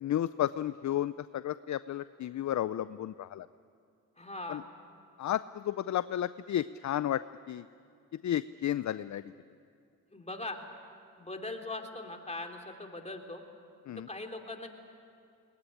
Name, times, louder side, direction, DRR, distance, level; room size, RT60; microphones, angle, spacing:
voice 1, 0.0-3.5 4.5-4.6 5.2-7.2 7.5-7.6 8.2-9.2 13.9-14.1, left 11 dB, 50° left, 15 dB, 0.5 m, -32 dB
voice 2, 4.2-4.6 10.1-10.6 11.2-13.4 14.1-14.7, left 2 dB, 20° left, 2 dB, 3.3 m, -40 dB
21.5 x 19.5 x 10.0 m, 2.4 s
supercardioid pair, 55°, 36 cm